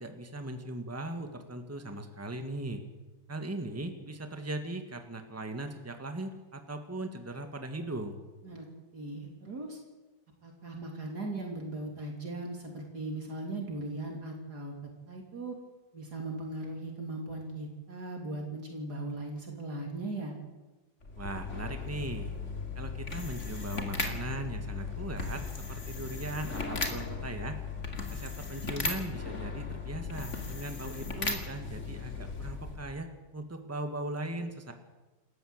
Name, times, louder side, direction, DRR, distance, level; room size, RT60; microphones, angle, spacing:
voice 1, 0.0-2.8 3.3-8.2 21.2-22.3 22.8-25.4 25.7-27.6 28.1-34.7, right 2 dB, 10° right, 6 dB, 1.8 m, -39 dB
voice 2, 8.9-9.8 10.4-14.7 15.1-15.6 15.9-20.3, right 2 dB, 65° right, 1 dB, 3.7 m, -38 dB
sound 1, 21.0-33.0, left 4 dB, 45° left, 2.9 m, -37 dB
28.0 x 14.0 x 8.2 m, 1.2 s
omnidirectional pair, 1.8 m